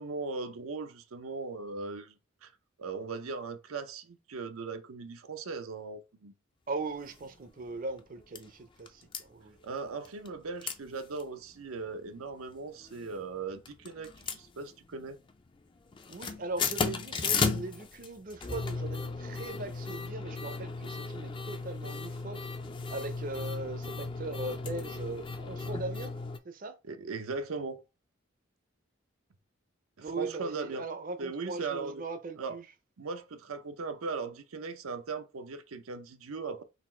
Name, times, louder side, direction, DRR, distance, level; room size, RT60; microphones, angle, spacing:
voice 1, 0.0-2.1 2.4-2.5 2.8-6.3 9.6-15.2 26.9-27.8 30.0-30.9 31.2-32.0 32.4-32.6 33.0-36.6, right 4 dB, 90° right, 0.6 m, -38 dB
voice 2, 6.7-9.6 16.1-22.5 22.9-26.1 26.4-26.8 30.0-32.6, right 3 dB, 40° right, 0.5 m, -39 dB
sound 1, 7.1-7.2 7.7-7.8 8.0-8.4 8.9-9.2 10.0-10.3 10.6-10.8 11.1-11.2 11.7-12.1 12.8-13.3 13.6-15.0 15.3-15.6 15.9-26.4, left 4 dB, 25° left, 0.3 m, -35 dB
4.1 x 2.4 x 4.2 m
head